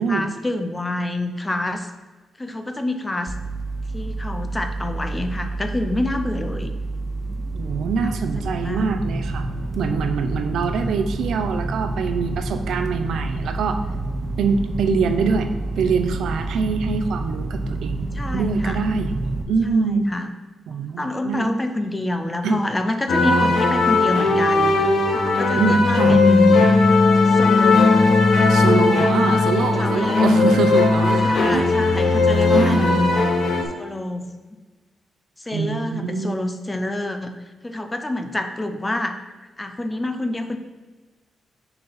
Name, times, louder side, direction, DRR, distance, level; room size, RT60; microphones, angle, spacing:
voice 1, 0.0-1.9 2.4-3.3 3.9-6.7 8.4-8.9 18.1-18.8 19.8-20.3 21.0-26.6 27.3-28.2 29.1-29.5 29.8-30.5 31.2-33.1 33.7-34.6 35.4-37.3 37.6-39.2 39.6-40.6, left 1 dB, 15° left, 7 dB, 0.5 m, -27 dB
sound 1, 3.3-19.4, right 2 dB, 30° right, 0.7 m, -28 dB
voice 2, 7.5-9.5 9.8-13.8 14.4-15.5 15.8-18.1 18.3-20.1 20.7-21.5 22.4-22.6 23.2-23.5 25.5-26.2 28.5-31.6 31.9-32.1 32.5-32.9 35.5-36.4, right 5 dB, 75° right, 7 dB, 0.6 m, -24 dB
sound 2, 23.1-33.6, left 3 dB, 60° left, 1.2 m, -18 dB
sound 3, 26.0-30.7, left 2 dB, 35° left, 2.0 m, -20 dB
6.6 x 4.3 x 5.7 m, 1.3 s
cardioid pair, 145°, 0 cm